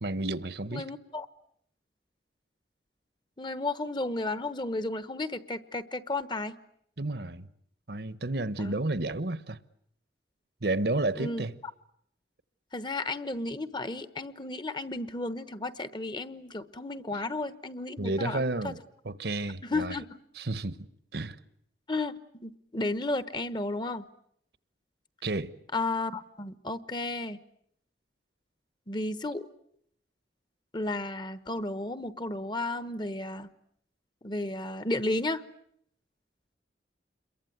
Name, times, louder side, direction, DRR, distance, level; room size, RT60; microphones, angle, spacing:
voice 1, 0.0-0.9 7.0-7.5 7.9-9.6 10.6-11.5 18.0-18.8 19.0-19.9 20.4-20.9 21.1-21.4 25.2-25.6, right 2 dB, 60° right, 1.1 m, -31 dB
voice 2, 0.7-1.3 3.4-6.6 8.6-8.7 11.2-11.4 12.7-18.7 19.7-20.2 21.9-22.1 22.4-24.1 25.7-27.4 28.9-29.5 30.7-33.5 34.2-35.4, left 2 dB, 25° left, 1.1 m, -33 dB
28.0 x 22.5 x 9.3 m
head